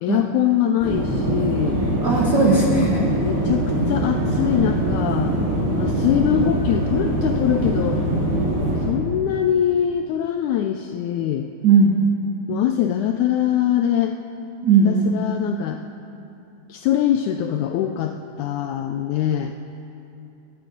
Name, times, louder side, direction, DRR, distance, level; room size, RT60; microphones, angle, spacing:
voice 1, 0.0-1.8 3.0-5.4 5.8-8.0 8.9-11.5 12.5-14.2 14.9-15.8 16.7-19.5, left 10 dB, 85° left, 6 dB, 1.7 m, -23 dB
sound 1, 0.8-8.9, right 1 dB, 5° right, 3.1 m, -22 dB
voice 2, 2.0-3.1 11.6-12.0 14.6-15.1, right 4 dB, 70° right, -2 dB, 1.0 m, -17 dB
22.0 x 9.3 x 5.2 m, 2.8 s
omnidirectional pair, 3.9 m